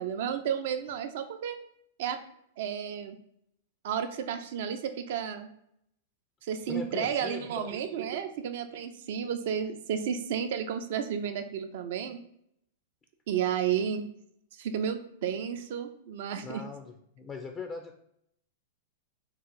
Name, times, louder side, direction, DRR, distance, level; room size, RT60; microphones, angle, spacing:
voice 1, 0.0-1.6 2.0-2.2 2.6-3.2 3.8-5.5 6.4-12.2 13.3-14.0 14.6-16.6, right 8 dB, 60° right, 8 dB, 0.5 m, -32 dB
voice 2, 6.7-7.7 16.4-18.0, left 4 dB, 20° left, 4 dB, 0.5 m, -40 dB
3.7 x 2.4 x 4.6 m, 0.74 s
hypercardioid pair, 105°, 0 cm